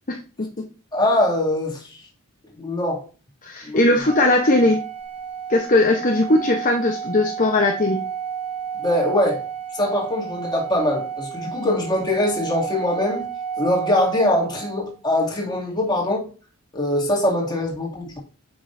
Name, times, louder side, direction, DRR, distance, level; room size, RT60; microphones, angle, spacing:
voice 1, 0.1-0.6 3.4-4.8 5.5-8.0, left 2 dB, 35° left, 0.8 m, -19 dB
voice 2, 0.9-2.0 2.6-3.0 3.6-3.8 8.8-9.4 9.7-13.3 13.6-16.3 16.7-18.2, left 1 dB, 20° left, 2.3 m, -22 dB
Organ, 4.0-14.9, right 7 dB, 5° right, 3.7 m, -31 dB
8.3 x 6.2 x 2.6 m
head